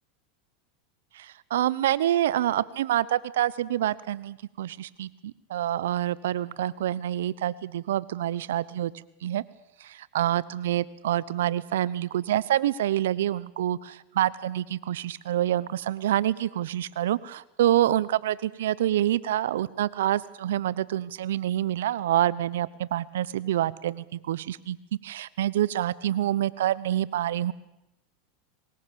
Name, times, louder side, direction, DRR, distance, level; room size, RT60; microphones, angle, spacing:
voice 1, 1.1-8.9 9.2-9.4 9.8-24.8 25.0-27.5, right 12 dB, 75° right, 19 dB, 0.9 m, -27 dB
24.5 x 20.5 x 7.0 m, 0.89 s
hypercardioid pair, 90°, 0 cm